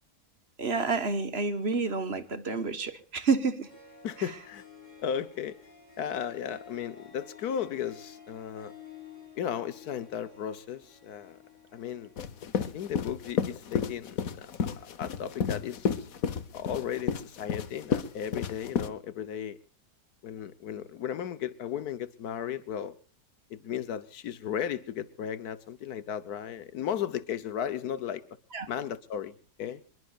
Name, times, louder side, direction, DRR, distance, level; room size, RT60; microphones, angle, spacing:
voice 1, 0.6-3.7 28.5-28.7, right 4 dB, 45° right, 1.6 m, -29 dB
Harp, 3.6-13.1, left 6 dB, 50° left, 6.9 m, -52 dB
voice 2, 4.0-4.6 5.0-5.6 6.0-8.7 9.4-11.4 11.7-12.1 12.5-15.9 16.5-19.6 20.2-22.9 23.5-28.2 28.7-29.3 29.6-29.8, left 9 dB, 85° left, 1.5 m, -35 dB
sound 1, 12.2-18.9, left 7 dB, 70° left, 1.5 m, -31 dB
25.5 x 22.0 x 2.5 m
omnidirectional pair, 1.6 m